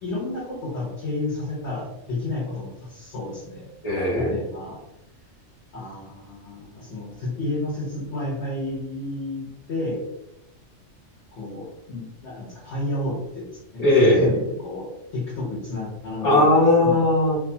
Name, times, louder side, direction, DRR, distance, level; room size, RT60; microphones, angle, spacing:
voice 1, 0.0-3.7 4.1-4.8 5.7-10.1 11.3-13.9 14.2-17.1, left 2 dB, 60° left, -6 dB, 1.0 m, -31 dB
voice 2, 3.8-4.4 13.8-14.4 16.2-17.4, left 1 dB, 30° left, -5 dB, 1.2 m, -18 dB
2.5 x 2.2 x 2.6 m, 0.88 s
omnidirectional pair, 1.3 m